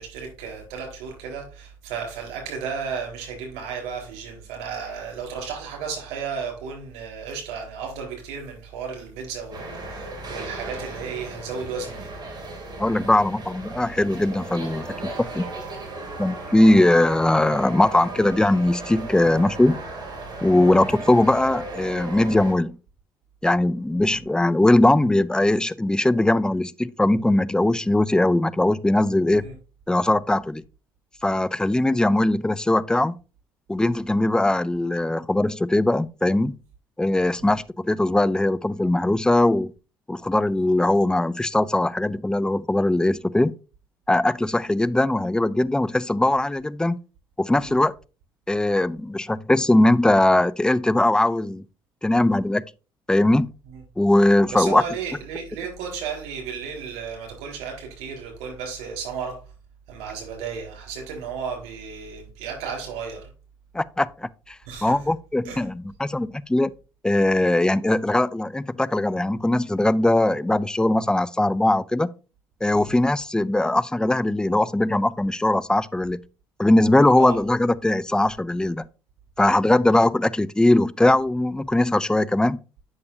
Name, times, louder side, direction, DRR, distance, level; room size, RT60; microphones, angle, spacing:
voice 1, 0.0-12.1 20.6-20.9 24.0-24.2 29.3-29.5 37.4-37.6 47.6-47.7 54.5-59.4 59.9-63.3 64.7-64.9 65.4-65.6 72.7-73.0 77.2-77.4, right 6 dB, 65° right, 4.2 m, -34 dB
sound 1, 9.5-22.5, right 2 dB, 35° right, 2.8 m, -36 dB
voice 2, 12.8-15.4 16.2-19.8 20.4-22.8 23.4-29.4 29.9-30.6 31.2-33.2 33.7-36.5 37.0-39.7 40.1-43.5 44.1-47.0 47.4-47.9 48.5-51.6 52.0-52.6 53.1-53.5 54.0-54.8 63.7-64.6 64.8-66.7 67.0-72.1 72.6-76.2 76.6-78.9 79.4-82.6, left 1 dB, 5° left, 0.4 m, -20 dB
8.4 x 6.5 x 2.7 m
figure-of-eight pair, 55°, 12 cm